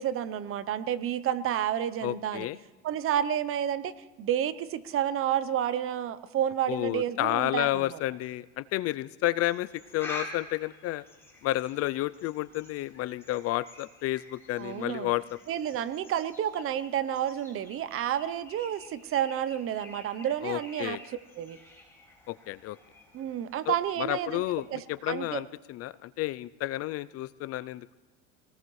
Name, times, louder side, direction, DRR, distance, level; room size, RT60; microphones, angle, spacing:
voice 1, 0.0-2.5 2.8-3.9 4.2-8.0 14.6-15.1 15.5-21.0 21.4-21.6 23.1-24.4 24.7-25.4, right 10 dB, 40° right, 15 dB, 0.7 m, -30 dB
voice 2, 2.0-2.6 6.7-9.7 9.9-11.0 11.4-15.4 20.4-21.0 22.3-22.8 23.7-28.0, left 16 dB, 45° left, 18 dB, 0.4 m, -31 dB
sound 1, 9.4-24.7, left 2 dB, 10° left, 4.8 m, -49 dB
24.0 x 19.0 x 3.2 m, 1.3 s
cardioid pair, 125°, 33 cm